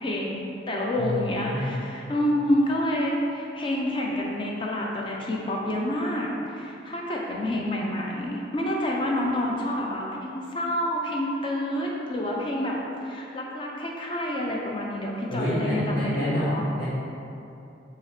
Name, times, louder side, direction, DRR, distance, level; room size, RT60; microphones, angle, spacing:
voice 1, 0.0-12.8 13.0-16.6, left 1 dB, 25° left, -2 dB, 0.4 m, -28 dB
voice 2, 1.0-1.7 15.3-16.8, left 1 dB, 65° left, -13 dB, 1.0 m, -28 dB
4.3 x 2.8 x 3.2 m, 2.8 s
head